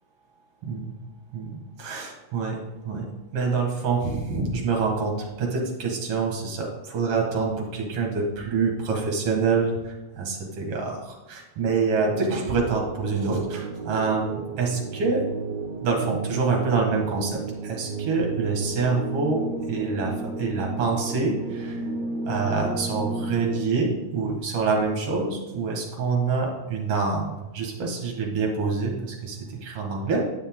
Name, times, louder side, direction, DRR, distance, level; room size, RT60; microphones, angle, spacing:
voice 1, 0.6-0.9 1.3-2.6 2.8-3.1 3.3-15.3 15.8-21.8 22.3-30.3, right 4 dB, 50° right, 0 dB, 2.4 m, -26 dB
sound 1, 11.9-23.6, right 3 dB, 70° right, 2.0 m, -32 dB
10.0 x 7.1 x 3.7 m, 1.1 s
omnidirectional pair, 3.7 m